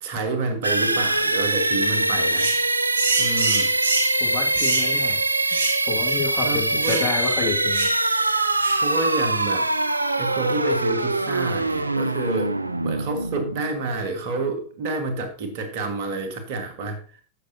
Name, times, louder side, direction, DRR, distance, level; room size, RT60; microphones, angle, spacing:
voice 1, 0.0-2.5 3.2-3.7 6.4-7.1 8.8-9.7 10.2-12.6 12.8-17.2, right 3 dB, 50° right, 6 dB, 1.7 m, -28 dB
sound 1, 0.6-14.3, right 2 dB, 85° right, 0.4 m, -23 dB
voice 2, 2.0-2.3 4.2-5.2 5.8-7.9, left 7 dB, 35° left, 2 dB, 2.2 m, -30 dB
sound 2, 2.4-2.6 3.0-4.2 4.6-4.9 5.5-5.8 6.1-6.2 6.8-7.1 7.7-8.0 8.6-8.9, right 3 dB, 65° right, 1.5 m, -26 dB
14.0 x 6.5 x 2.8 m, 0.40 s
figure-of-eight pair, 90°, 0 cm